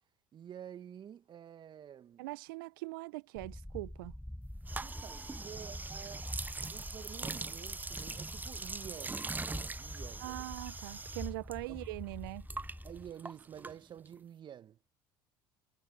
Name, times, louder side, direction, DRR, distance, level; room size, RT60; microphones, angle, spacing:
voice 1, 0.3-2.2 4.8-6.3 6.6-10.6 11.7-11.8 12.8-14.8, right 9 dB, 40° right, 1.6 m, -50 dB
voice 2, 2.2-4.1 10.2-12.5, right 21 dB, 70° right, 1.2 m, -42 dB
sound 1, 3.4-13.1, left 1 dB, 5° left, 1.5 m, -46 dB
sound 2, 4.6-11.6 11.8-14.2, right 3 dB, 15° right, 0.7 m, -42 dB
hypercardioid pair, 65°, 12 cm